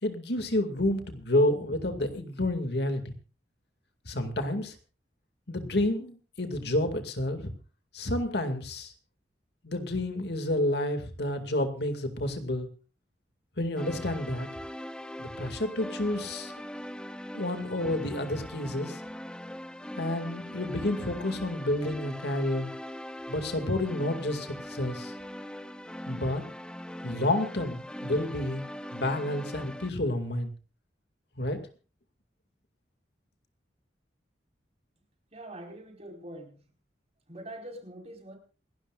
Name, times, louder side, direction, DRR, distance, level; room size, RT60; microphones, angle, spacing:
voice 1, 0.0-3.1 4.1-4.8 5.5-7.5 7.9-8.9 9.6-12.7 13.6-14.5 15.2-16.5 17.3-19.0 20.0-22.7 23.3-25.1 26.1-26.4 27.0-30.5 31.4-31.6, left 1 dB, 65° left, 7 dB, 2.3 m, -30 dB
sound 1, 13.8-29.9, equal, 5° left, 0.7 m, -41 dB
voice 2, 35.3-36.6 37.3-38.4, right 1 dB, 40° right, 2 dB, 4.8 m, -44 dB
27.5 x 12.5 x 2.5 m, 0.34 s
head